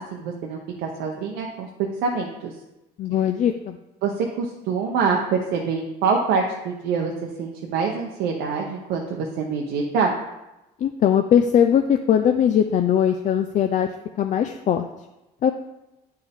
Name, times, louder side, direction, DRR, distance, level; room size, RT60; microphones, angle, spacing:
voice 1, 0.0-2.5 4.0-10.1, right 5 dB, 90° right, 0 dB, 0.9 m, -25 dB
voice 2, 3.0-3.8 10.8-13.9 14.2-14.9 15.4-15.5, left 9 dB, 50° left, 6 dB, 0.4 m, -20 dB
9.4 x 4.5 x 3.5 m, 0.96 s
cardioid pair, 110°, 17 cm